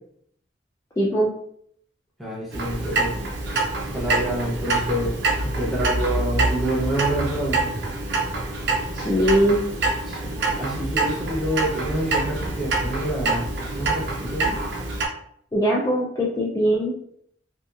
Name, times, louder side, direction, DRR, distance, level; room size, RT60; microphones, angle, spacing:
voice 1, 1.0-1.3 8.9-9.6 15.5-16.9, equal, 20° left, -4 dB, 0.3 m, -21 dB
voice 2, 2.2-3.1 3.8-5.2 5.4-7.6 10.1-14.5, right 1 dB, ahead, -5 dB, 0.7 m, -27 dB
Clock, 2.5-15.1, right 2 dB, 65° right, 0.5 m, -26 dB
2.8 x 2.3 x 2.3 m, 0.68 s
head